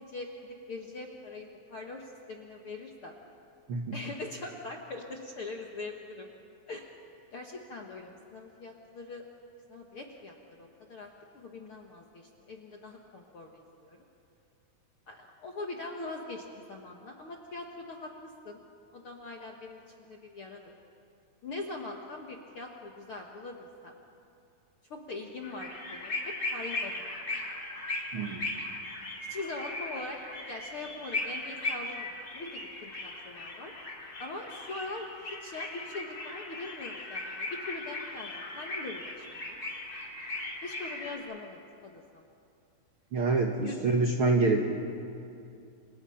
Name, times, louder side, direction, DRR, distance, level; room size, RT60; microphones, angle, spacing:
voice 1, 0.0-3.1 3.9-6.3 6.7-6.9 7.3-9.2 9.7-14.0 15.1-18.6 18.9-19.8 20.1-20.7 21.4-24.0 24.9-27.3 29.3-30.2 30.5-32.1 32.3-33.7 34.2-39.6 40.6-42.2 43.6-43.8, left 3 dB, 60° left, 1 dB, 1.5 m, -42 dB
sound 1, 25.4-41.2, left 2 dB, 25° left, 2.8 m, -38 dB
voice 2, 28.1-28.5 43.1-44.6, right 3 dB, 75° right, 3 dB, 1.2 m, -26 dB
29.0 x 26.5 x 5.8 m, 2.6 s
omnidirectional pair, 4.5 m